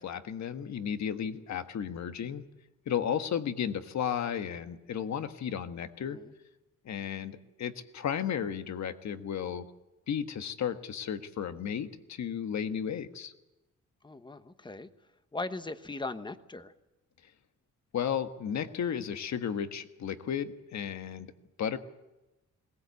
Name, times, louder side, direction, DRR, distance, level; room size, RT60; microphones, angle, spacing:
voice 1, 0.0-2.4 2.9-6.2 6.8-9.7 10.1-13.3 17.9-21.3 21.6-21.8, left 8 dB, 70° left, 9 dB, 1.4 m, -34 dB
voice 2, 6.0-6.3 14.0-14.9 15.3-16.7, left 2 dB, 15° left, 10 dB, 1.1 m, -39 dB
21.0 x 19.0 x 8.3 m, 1.0 s
cardioid pair, 125°, 29 cm